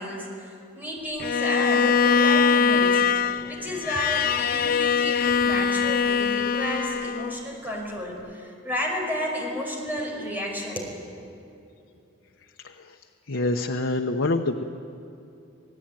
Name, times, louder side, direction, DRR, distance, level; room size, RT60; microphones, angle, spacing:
voice 1, 0.0-3.0 3.5-11.0, equal, 10° right, 0 dB, 5.3 m, -32 dB
Bowed string instrument, 1.2-7.5, left 6 dB, 50° left, 0.5 m, -22 dB
voice 2, 13.3-14.6, left 2 dB, 85° left, 3 dB, 1.0 m, -25 dB
27.5 x 18.5 x 9.1 m, 2.8 s
head